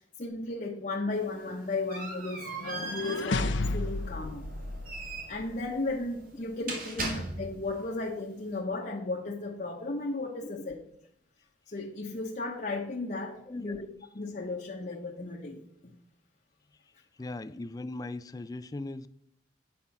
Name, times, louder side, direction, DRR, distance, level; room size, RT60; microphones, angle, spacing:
voice 1, 0.0-4.5 5.3-10.8 11.7-13.8 14.1-15.9, left 2 dB, 45° left, 0.9 m, -35 dB
sound 1, 1.1-7.8, right 2 dB, 50° right, 2.0 m, -40 dB
sound 2, 2.4-5.6, left 2 dB, 90° left, 0.7 m, -33 dB
voice 2, 13.5-13.8 17.2-19.1, left 2 dB, 20° left, 0.3 m, -39 dB
8.7 x 5.4 x 5.8 m
head